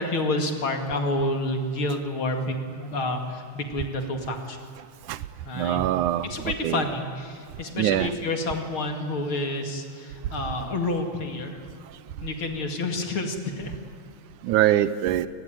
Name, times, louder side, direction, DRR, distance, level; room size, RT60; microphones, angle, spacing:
voice 1, 0.0-4.6 5.5-5.8 6.2-11.6 12.2-13.8, left 2 dB, 45° left, 4 dB, 2.8 m, -29 dB
voice 2, 5.6-6.3 6.6-6.8 7.8-8.1 14.4-15.3, right 13 dB, 80° right, 14 dB, 2.2 m, -23 dB
28.5 x 19.5 x 9.1 m, 2.1 s
omnidirectional pair, 3.6 m